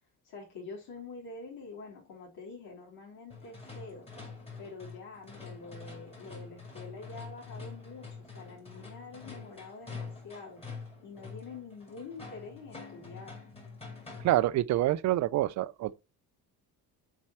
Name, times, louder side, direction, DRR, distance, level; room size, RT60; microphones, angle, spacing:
voice 1, 0.2-4.1 4.6-10.6 11.0-13.4, left 4 dB, 70° left, 3.3 m, -46 dB
sound 1, 3.3-14.5, left 4 dB, 15° left, 2.2 m, -46 dB
voice 2, 14.2-15.9, right 15 dB, 50° right, 0.4 m, -27 dB
7.5 x 4.5 x 4.3 m
cardioid pair, 155°, 38 cm